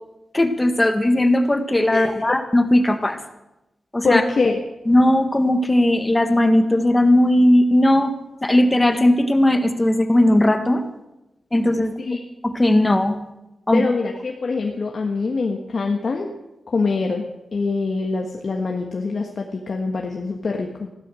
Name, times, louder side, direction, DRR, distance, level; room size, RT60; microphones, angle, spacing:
voice 1, 0.3-3.2 3.9-4.2 4.9-8.1 8.4-10.8 11.5-11.9 12.4-13.2 13.7-13.9, left 1 dB, 20° left, 7 dB, 1.8 m, -17 dB
voice 2, 4.0-4.6 12.0-12.2 13.7-16.3 16.7-17.2 17.5-20.9, left 4 dB, 60° left, 1 dB, 1.5 m, -24 dB
16.0 x 12.0 x 6.4 m, 0.97 s
cardioid pair, 70°, 0 cm